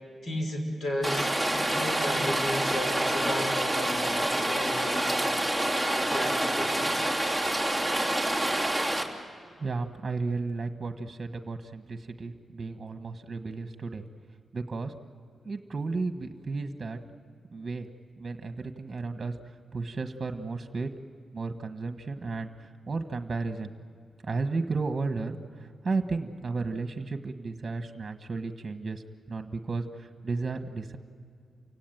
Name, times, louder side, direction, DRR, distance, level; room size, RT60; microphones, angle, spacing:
voice 1, 0.2-5.1 6.1-7.0, left 1 dB, 70° left, 3 dB, 5.5 m, -34 dB
Rain, 1.0-9.0, right 1 dB, 15° left, 3.1 m, -27 dB
voice 2, 9.6-14.0 14.5-14.9 15.4-17.0 17.5-17.9 18.2-19.3 19.7-20.9 21.3-23.7 24.2-25.4 25.8-29.0 29.3-31.0, right 3 dB, 40° right, 7 dB, 1.4 m, -33 dB
29.0 x 17.0 x 9.1 m, 2.3 s
cardioid pair, 80°, 0 cm